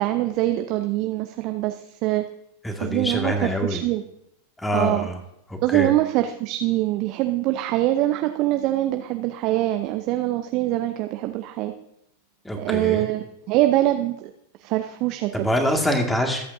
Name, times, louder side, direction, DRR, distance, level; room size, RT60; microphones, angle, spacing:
voice 1, 0.0-2.2 2.8-3.3 3.6-4.0 4.7-5.1 5.6-11.7 12.6-14.1 14.6-15.5, right 15 dB, 40° right, 7 dB, 0.7 m, -23 dB
voice 2, 2.6-3.8 4.6-5.2 5.5-5.9 12.4-13.1 15.3-16.4, equal, 5° left, 3 dB, 2.0 m, -25 dB
21.5 x 8.6 x 2.7 m, 0.77 s
figure-of-eight pair, 90°, 0 cm